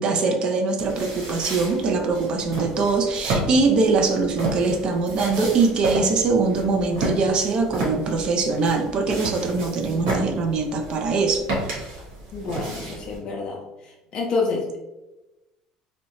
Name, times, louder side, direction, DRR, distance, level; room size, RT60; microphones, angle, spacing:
voice 1, 0.0-11.8, right 4 dB, 40° right, 4 dB, 0.4 m, -22 dB
sound 1, 0.8-13.2, right 1 dB, 85° right, 1.1 m, -31 dB
voice 2, 12.3-13.6 14.1-14.8, left 3 dB, 40° left, -1 dB, 0.4 m, -27 dB
2.7 x 2.0 x 3.0 m, 1.0 s
cardioid pair, 130°, 2 cm